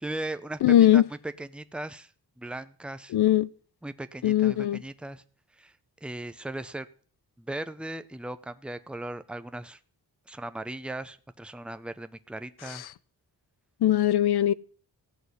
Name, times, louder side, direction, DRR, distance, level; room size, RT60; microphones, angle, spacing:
voice 1, 0.0-0.6 0.9-2.1 2.4-3.1 3.8-5.2 5.6-5.7 6.0-6.9 7.4-9.8 10.3-12.8, right 1 dB, 5° right, 0.7 m, -37 dB
voice 2, 0.6-1.0 3.1-3.5 4.2-4.8 12.7-12.8 13.8-14.5, left 12 dB, 85° left, 0.7 m, -20 dB
16.5 x 6.2 x 9.7 m
wide cardioid pair, 140°, 38 cm